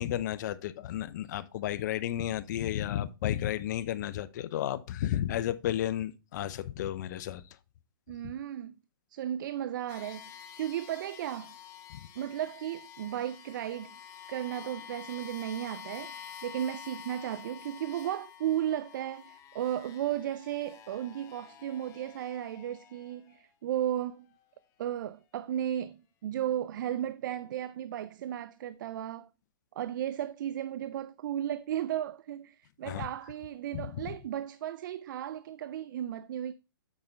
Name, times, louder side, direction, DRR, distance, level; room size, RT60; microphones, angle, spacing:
voice 1, 0.0-7.4 8.2-8.3 11.9-12.1 32.8-33.1 33.7-34.2, left 12 dB, 55° left, 0.7 m, -33 dB
voice 2, 8.1-8.7 9.1-11.6 12.2-14.0 14.3-16.1 16.4-24.3 24.8-29.3 29.8-36.5, right 11 dB, 60° right, 0.4 m, -35 dB
sound 1, 9.9-23.5, left 9 dB, 25° left, 1.0 m, -49 dB
8.7 x 5.1 x 3.2 m
hypercardioid pair, 135°, 12 cm